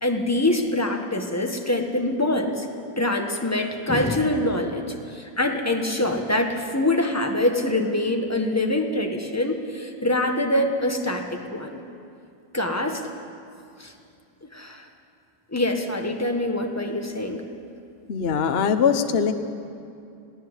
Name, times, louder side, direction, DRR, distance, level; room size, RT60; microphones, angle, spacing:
voice 1, 0.0-2.7 3.0-4.8 5.1-11.8 12.5-13.0 13.8-13.9 14.4-14.8 15.5-17.4, left 1 dB, 10° left, 3 dB, 1.2 m, -24 dB
voice 2, 18.1-19.3, left 7 dB, 45° left, 7 dB, 0.9 m, -21 dB
22.0 x 16.0 x 8.2 m, 2.5 s
omnidirectional pair, 2.1 m